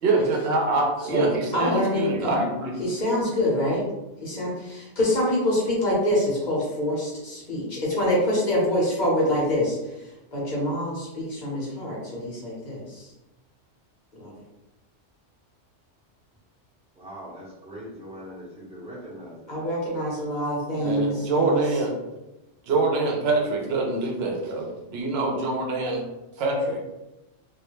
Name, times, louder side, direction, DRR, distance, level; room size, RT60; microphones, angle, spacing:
voice 1, 0.0-2.8 20.8-21.9 22.7-26.0 26.4-26.8, right 3 dB, 65° right, 1 dB, 0.8 m, -25 dB
voice 2, 1.5-2.3 2.8-3.8 4.2-13.1 14.1-14.3 19.5-21.6, left 1 dB, 45° left, -6 dB, 0.8 m, -26 dB
voice 3, 16.9-19.6 20.7-21.4, equal, 5° right, -7 dB, 0.6 m, -41 dB
2.3 x 2.0 x 2.9 m, 0.98 s
omnidirectional pair, 1.2 m